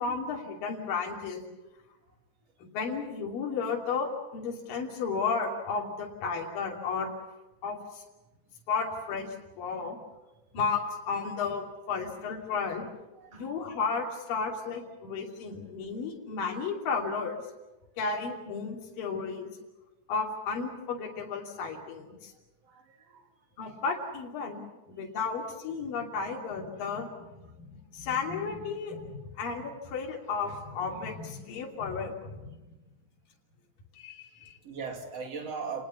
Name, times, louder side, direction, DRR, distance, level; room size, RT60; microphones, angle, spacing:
voice 1, 0.0-1.4 2.6-7.1 7.6-8.0 8.7-10.0 10.5-12.9 13.3-17.4 18.0-19.5 20.1-22.3 23.6-24.6 24.9-27.3 27.6-32.4 34.0-34.6, left 5 dB, 60° left, 0 dB, 4.4 m, -33 dB
voice 2, 13.1-13.5 22.6-23.3 34.6-35.8, right 5 dB, 45° right, 4 dB, 3.5 m, -39 dB
29.5 x 19.5 x 7.1 m, 1.1 s
omnidirectional pair, 4.6 m